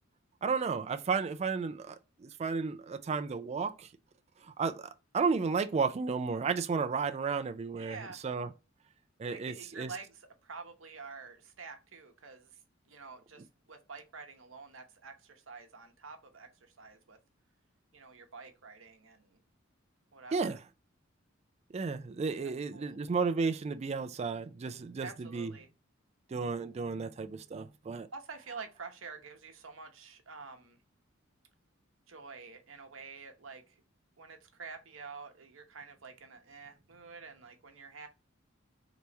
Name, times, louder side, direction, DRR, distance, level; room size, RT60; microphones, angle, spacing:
voice 1, 0.4-3.9 4.4-8.5 9.2-9.9 20.3-20.6 21.7-25.5 26.3-28.1, right 5 dB, 35° right, 0.3 m, -33 dB
voice 2, 7.7-8.2 9.3-12.5 12.9-17.2 17.9-19.4 20.1-20.6 22.4-23.0 25.0-25.7 28.1-30.8 32.1-33.8 34.2-38.1, right 4 dB, 75° right, 0.9 m, -48 dB
3.4 x 3.1 x 4.0 m
head